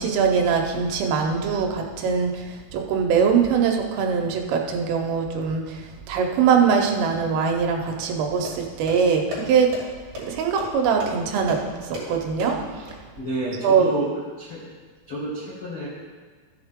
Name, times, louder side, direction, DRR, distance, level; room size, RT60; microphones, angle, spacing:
voice 1, 0.0-5.8 6.1-9.7 10.2-12.6 13.6-13.9, right 6 dB, 80° right, 2 dB, 3.3 m, -22 dB
sound 1, 8.0-13.0, left 1 dB, 40° right, 3.5 m, -37 dB
voice 2, 13.2-14.6 15.1-15.9, equal, 70° left, -9 dB, 1.3 m, -30 dB
14.0 x 7.9 x 3.6 m, 1.5 s
omnidirectional pair, 5.9 m